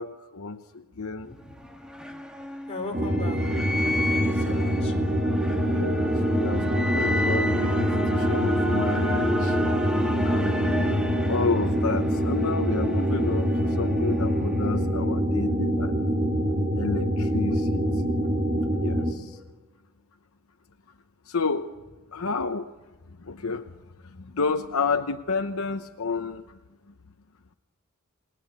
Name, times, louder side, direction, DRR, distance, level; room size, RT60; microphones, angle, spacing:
voice 1, 0.0-1.3 5.5-9.6 10.2-13.5 13.8-15.9 16.8-18.2 18.8-19.4 21.3-21.7 22.1-22.7 23.2-23.7 24.2-26.6, left 4 dB, 75° left, 7 dB, 0.9 m, -30 dB
voice 2, 1.1-1.6 2.7-3.5 4.1-4.9, left 2 dB, 30° left, 1 dB, 4.5 m, -38 dB
sound 1, 1.3-15.1, equal, 5° right, 1.6 m, -31 dB
sound 2, 2.9-19.1, equal, 30° right, 2.3 m, -25 dB
28.0 x 20.5 x 8.2 m, 1.2 s
head